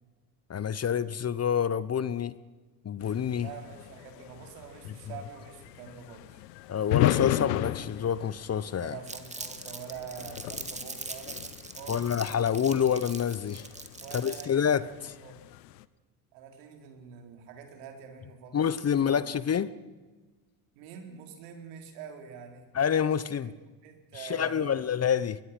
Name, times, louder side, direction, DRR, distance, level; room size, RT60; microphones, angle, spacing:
voice 1, 0.5-2.4 2.8-3.5 6.7-9.0 11.9-13.7 14.1-14.8 18.5-19.7 22.7-23.5 24.2-25.4, left 8 dB, 30° left, 17 dB, 1.0 m, -27 dB
sound 1, 3.0-15.9, left 15 dB, 80° left, 1.0 m, -36 dB
voice 2, 3.3-6.4 8.8-12.2 14.0-15.4 16.3-19.5 20.7-22.7 23.3-23.6 23.8-24.8, right 7 dB, 75° right, 4 dB, 4.4 m, -46 dB
Crumpling crinkling, 9.1-14.6, right 3 dB, 15° right, 2.3 m, -41 dB
22.5 x 21.0 x 6.1 m, 1.3 s
hypercardioid pair, 70°, 48 cm